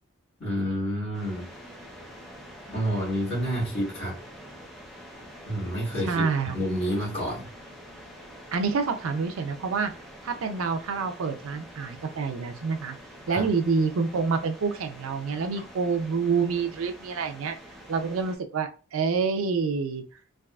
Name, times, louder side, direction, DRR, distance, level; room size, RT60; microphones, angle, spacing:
voice 1, 0.4-1.5 2.7-4.2 5.4-6.2 6.5-7.5 13.3-13.5, equal, 55° left, 1.6 m, -29 dB
sound 1, 1.1-18.4, equal, ahead, 0.6 m, -46 dB
voice 2, 6.0-6.6 8.5-9.9 10.2-12.9 13.3-17.6 17.9-20.0, right 5 dB, 85° right, 0.4 m, -27 dB
3.5 x 2.3 x 2.3 m
head